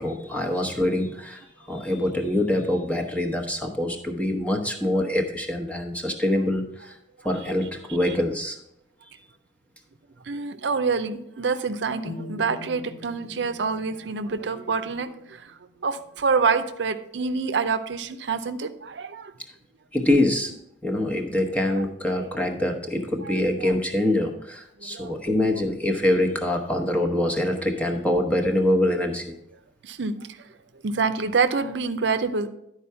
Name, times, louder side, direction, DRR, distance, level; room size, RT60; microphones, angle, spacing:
voice 1, 0.0-7.0 7.2-8.6 19.9-20.5 20.8-29.4, left 1 dB, 10° left, 2 dB, 0.9 m, -25 dB
voice 2, 10.3-15.5 15.8-19.3 21.7-21.8 22.2-22.3 23.3-23.7 24.8-25.1 29.8-30.2 30.8-32.5, right 5 dB, 75° right, 10 dB, 0.6 m, -27 dB
sound 1, 12.0-16.0, left 3 dB, 70° left, 2.3 m, -43 dB
11.0 x 4.7 x 5.6 m, 0.81 s
head